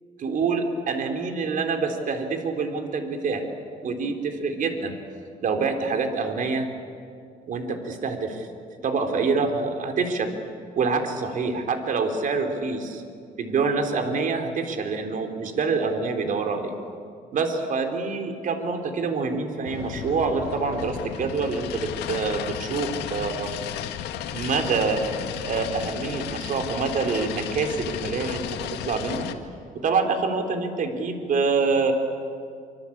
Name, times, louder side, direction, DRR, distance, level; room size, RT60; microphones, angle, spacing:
voice 1, 0.2-3.4 3.8-4.9 5.4-6.7 7.5-8.5 8.8-10.3 10.8-13.0 13.4-16.7 17.3-23.5 24.3-25.1 25.4-29.3 29.8-31.9, right 4 dB, 50° right, 5 dB, 3.8 m, -26 dB
sound 1, 19.7-29.3, left 10 dB, 80° left, 1.8 m, -34 dB
26.5 x 25.5 x 8.8 m, 2.3 s
cardioid pair, 110°, 17 cm